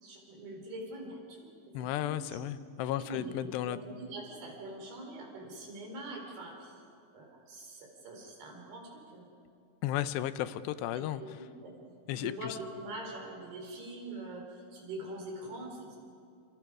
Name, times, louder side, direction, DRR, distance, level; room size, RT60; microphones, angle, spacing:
voice 1, 0.0-1.5 1.8-2.5 3.0-6.7 7.1-9.3 10.9-11.0 11.6-11.7 12.2-14.4 14.7-15.9, right 1 dB, 75° right, 0 dB, 6.2 m, -43 dB
voice 2, 1.7-3.8 9.8-11.2 12.1-12.6, left 12 dB, 90° left, 13 dB, 2.9 m, -34 dB
29.0 x 27.0 x 4.9 m, 2.3 s
omnidirectional pair, 4.8 m